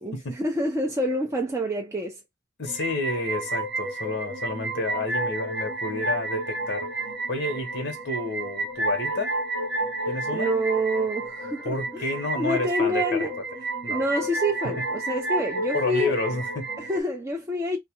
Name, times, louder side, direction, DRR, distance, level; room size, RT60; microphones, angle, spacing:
voice 1, 0.0-2.2 10.3-12.0 12.4-13.3 13.9-16.1 16.8-17.8, equal, 15° right, 0.4 m, -27 dB
voice 2, 2.6-6.9 7.3-9.4 10.1-10.6 11.6-13.3 13.8-14.0 14.8-14.9 15.7-16.7, left 2 dB, 55° left, 0.8 m, -30 dB
sound 1, 2.7-17.0, right 2 dB, 55° right, 0.8 m, -31 dB
2.3 x 2.0 x 2.8 m
head